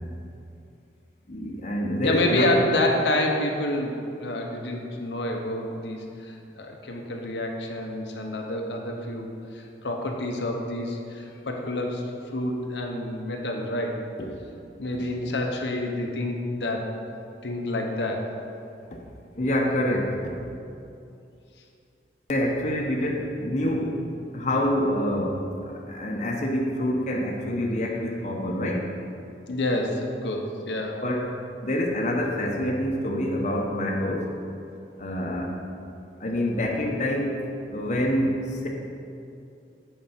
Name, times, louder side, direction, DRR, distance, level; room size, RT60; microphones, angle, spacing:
voice 1, 1.3-2.6 14.2-14.3 19.4-20.4 22.3-24.0 24.3-25.5 25.9-28.9 31.0-34.4 35.0-35.6 36.2-38.7, left 1 dB, 40° left, -1 dB, 0.8 m, -26 dB
voice 2, 2.0-9.3 9.5-12.0 12.3-14.0 14.8-16.9 17.4-18.3 29.5-31.0, left 1 dB, 85° left, 1 dB, 0.8 m, -28 dB
7.9 x 4.7 x 5.6 m, 2.6 s
head